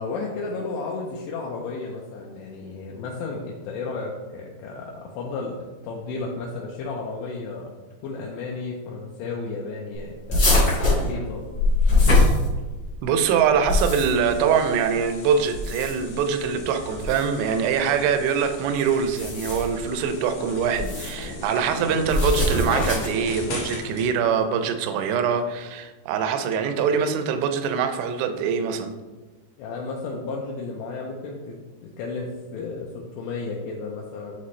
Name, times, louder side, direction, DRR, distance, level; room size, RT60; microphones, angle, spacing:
voice 1, 0.0-5.6 5.8-7.7 8.0-10.4 10.8-11.5 29.6-34.4, left 3 dB, 85° left, -2 dB, 2.9 m, -33 dB
sound 1, 10.3-12.9 13.5-14.3 15.5-16.2 17.0-17.2 19.0-19.8 20.7-21.2 22.1-23.2, left 2 dB, 40° left, 1.3 m, -21 dB
voice 2, 13.0-28.9, right 6 dB, 85° right, 8 dB, 2.8 m, -23 dB
sound 2, 13.7-24.1, left 2 dB, 65° left, 2.3 m, -39 dB
8.5 x 4.1 x 3.2 m, 1.3 s
omnidirectional pair, 5.1 m